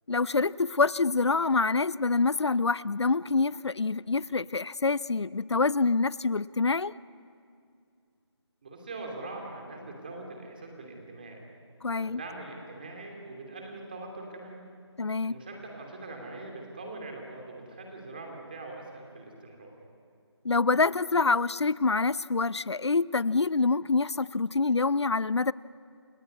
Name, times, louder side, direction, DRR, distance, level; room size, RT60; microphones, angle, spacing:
voice 1, 0.1-6.9 11.8-12.2 15.0-15.4 20.4-25.5, left 4 dB, 70° left, 20 dB, 0.6 m, -26 dB
voice 2, 8.6-11.4 11.9-14.7 15.2-19.7, right 2 dB, 20° right, 1 dB, 3.0 m, -42 dB
29.0 x 16.5 x 9.5 m, 2.4 s
figure-of-eight pair, 175°, 15 cm